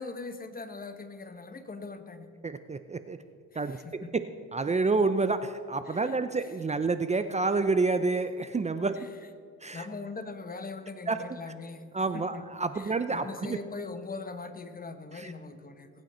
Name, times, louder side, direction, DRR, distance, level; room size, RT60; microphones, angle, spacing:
voice 1, 0.0-2.3 3.6-4.1 5.9-6.2 9.0-9.1 9.7-11.9 12.1-12.4 12.7-15.9, left 3 dB, 30° left, 9 dB, 1.2 m, -41 dB
voice 2, 2.4-3.2 3.5-3.8 4.5-9.0 9.6-9.9 11.1-11.2 11.9-13.6 15.1-15.3, right 3 dB, 25° right, 11 dB, 0.6 m, -28 dB
21.0 x 9.3 x 4.4 m, 2.2 s
cardioid pair, 90°, 30 cm